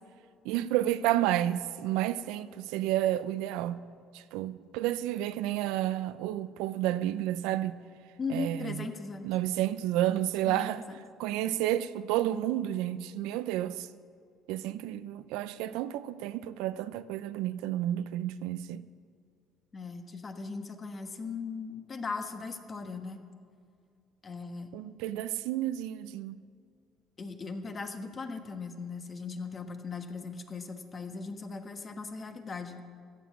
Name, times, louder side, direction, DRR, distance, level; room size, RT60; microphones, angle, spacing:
voice 1, 0.4-3.8 4.1-7.8 8.3-8.9 9.2-10.8 11.2-13.9 14.5-18.8 24.7-26.4, right 13 dB, 85° right, 0.5 m, -31 dB
voice 2, 8.2-9.3 10.4-10.8 19.7-23.2 24.2-24.7 27.2-32.8, left 4 dB, 30° left, 1.3 m, -38 dB
14.5 x 7.4 x 8.3 m
cardioid pair, 110°, 0 cm